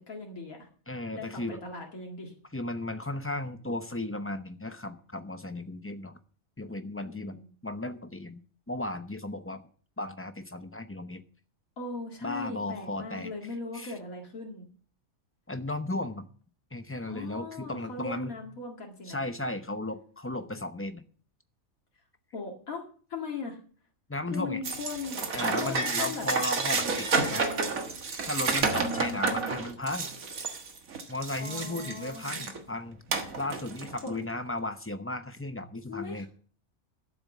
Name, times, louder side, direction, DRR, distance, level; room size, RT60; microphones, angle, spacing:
voice 1, 0.1-0.7 1.1-2.3 7.0-7.5 11.8-14.7 17.1-19.2 22.3-22.8 23.1-23.6 24.3-25.2 25.6-26.3 26.8-27.0 28.8-29.2 31.0-32.6 34.0-34.1 35.9-36.3, left 4 dB, 90° left, 0 dB, 2.5 m, -39 dB
voice 2, 0.9-1.6 2.5-6.2 6.6-8.4 8.7-9.6 10.0-11.2 12.2-13.3 13.7-13.9 15.5-16.3 16.7-18.4 19.1-21.0 24.1-24.6 25.3-27.5 28.2-30.1 31.1-33.0 33.4-36.3, left 2 dB, 15° left, 9 dB, 0.6 m, -35 dB
sound 1, 24.6-32.6 33.1-34.1, right 4 dB, 80° right, 2.0 m, -30 dB
12.0 x 7.3 x 7.4 m, 0.43 s
omnidirectional pair, 1.4 m